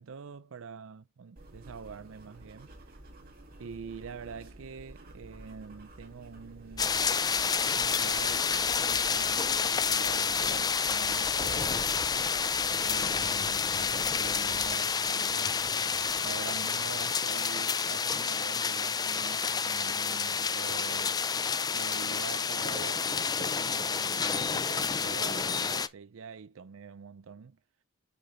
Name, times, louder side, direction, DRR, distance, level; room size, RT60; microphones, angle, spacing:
voice 1, 0.0-2.7 3.6-7.1 7.8-12.0 12.8-15.6 16.2-21.2 21.7-27.6, right 6 dB, 70° right, 0.5 m, -45 dB
sound 1, 1.4-14.8, right 1 dB, 45° right, 2.1 m, -51 dB
sound 2, 6.8-25.9, left 6 dB, 20° left, 0.4 m, -29 dB
sound 3, 11.4-17.1, left 4 dB, 50° left, 0.7 m, -49 dB
6.7 x 5.2 x 3.1 m
head